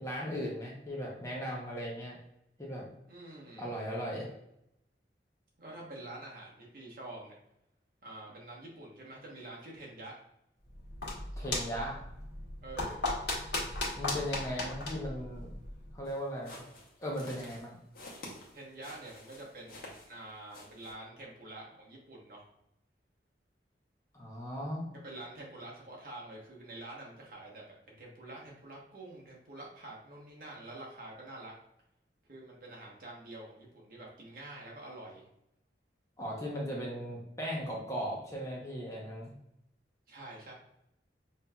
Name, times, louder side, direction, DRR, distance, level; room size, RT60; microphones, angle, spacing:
voice 1, 0.0-2.2 2.6-2.9 3.6-4.3 11.4-12.0 14.0-15.5 15.9-16.6 17.0-17.8 24.1-24.9 36.2-39.3, equal, 15° left, -4 dB, 0.8 m, -37 dB
voice 2, 3.1-3.7 5.6-7.3 8.0-10.1 12.6-13.1 18.5-22.5 24.9-31.5 32.3-35.3 36.7-37.0 40.1-40.5, right 2 dB, 50° right, -3 dB, 1.0 m, -47 dB
sound 1, 10.7-16.0, left 2 dB, 80° left, 1.3 m, -37 dB
sound 2, 16.0-20.2 20.5-20.9, left 1 dB, 55° left, 0.9 m, -50 dB
5.3 x 2.7 x 2.3 m, 0.81 s
head